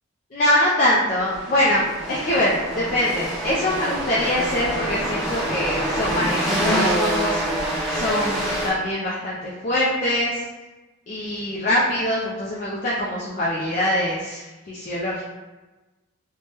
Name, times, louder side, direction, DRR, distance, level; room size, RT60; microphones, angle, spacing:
voice 1, 0.3-10.4 11.1-15.2, left 1 dB, 40° left, -7 dB, 0.4 m, -23 dB
sound 1, 1.2-8.7, right 1 dB, ahead, 0.7 m, -26 dB
3.3 x 2.2 x 2.8 m, 1.1 s
head